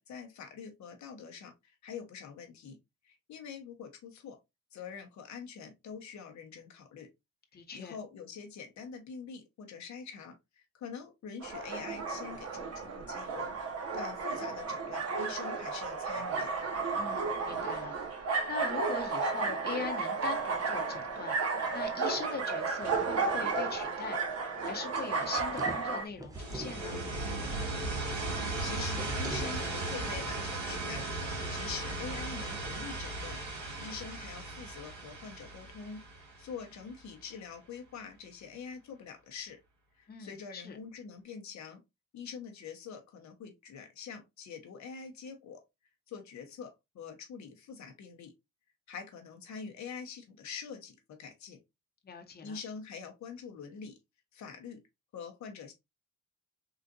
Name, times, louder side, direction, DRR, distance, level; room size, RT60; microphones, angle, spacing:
voice 1, 0.0-2.8 3.0-4.4 4.7-7.1 7.5-16.5 28.6-33.4 33.8-39.6 40.0-41.8 42.1-45.6 46.1-48.3 48.9-51.6 52.4-53.9 54.3-54.8 55.1-55.7, left 6 dB, 65° left, 0.9 m, -45 dB
voice 2, 7.5-8.0 17.0-18.1 18.5-21.4 21.7-24.2 24.6-27.0 40.1-40.8 52.0-52.6, left 5 dB, 30° left, 0.9 m, -41 dB
sound 1, 11.4-26.0, right 4 dB, 55° right, 1.0 m, -33 dB
sound 2, 25.1-26.8 28.9-29.6, right 2 dB, 10° right, 0.5 m, -42 dB
sound 3, 26.3-37.0, right 2 dB, 70° right, 1.9 m, -37 dB
3.7 x 2.4 x 2.5 m
cardioid pair, 90°, 30 cm